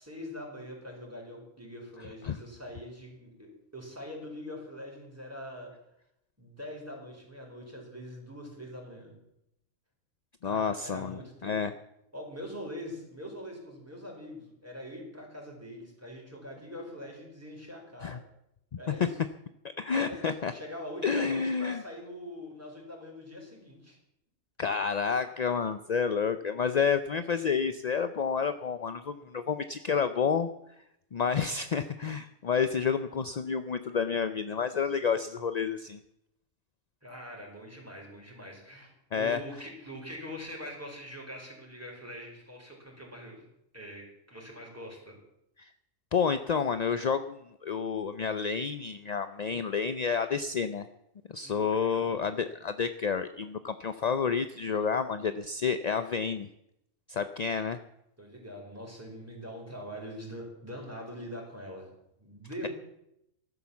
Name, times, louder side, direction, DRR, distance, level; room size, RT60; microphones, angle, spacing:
voice 1, 0.0-5.7 6.4-9.2 10.4-11.6 12.1-18.2 18.8-19.1 20.0-24.0 37.0-43.4 43.7-44.0 44.3-45.1 51.4-52.1 58.2-61.9 62.2-62.7, equal, 10° right, -1 dB, 4.9 m, -43 dB
voice 2, 10.4-11.7 18.0-18.2 18.9-19.1 19.6-20.5 21.0-21.8 24.6-30.5 31.1-36.0 39.1-39.4 45.6-45.7 46.1-50.9 51.3-56.5 57.1-57.8, left 6 dB, 50° left, 10 dB, 0.5 m, -29 dB
15.0 x 12.0 x 7.1 m, 0.81 s
omnidirectional pair, 1.4 m